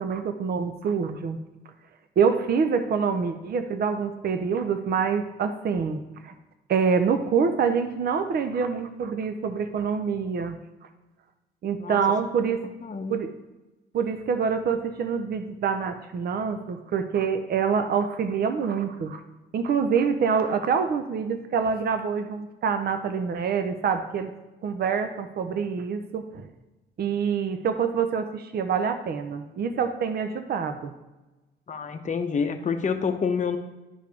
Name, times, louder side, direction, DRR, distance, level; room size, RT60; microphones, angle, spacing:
voice 1, 0.0-1.4 2.2-6.3 6.7-10.6 11.6-12.7 13.1-13.3 13.9-19.2 19.5-24.3 24.6-26.5 27.0-30.9, right 6 dB, 50° right, 9 dB, 0.7 m, -26 dB
voice 2, 12.8-13.2 31.7-33.6, left 5 dB, 40° left, 7 dB, 0.8 m, -27 dB
11.0 x 4.9 x 3.5 m, 1.1 s
cardioid pair, 90°, 20 cm